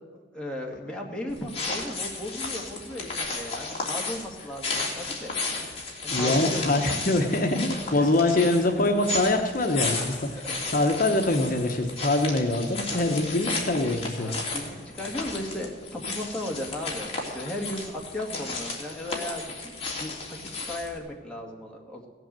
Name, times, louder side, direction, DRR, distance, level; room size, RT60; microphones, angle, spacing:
voice 1, 0.3-5.4 6.0-6.6 8.0-8.9 9.7-9.8 10.1-10.5 12.3-12.4 14.2-22.1, left 1 dB, 5° left, -2 dB, 2.1 m, -36 dB
sound 1, 1.3-21.0, left 3 dB, 35° left, 2.9 m, -34 dB
voice 2, 6.1-10.4 10.7-14.3, left 2 dB, 50° left, 4 dB, 1.1 m, -24 dB
17.0 x 8.1 x 7.6 m, 1.5 s
head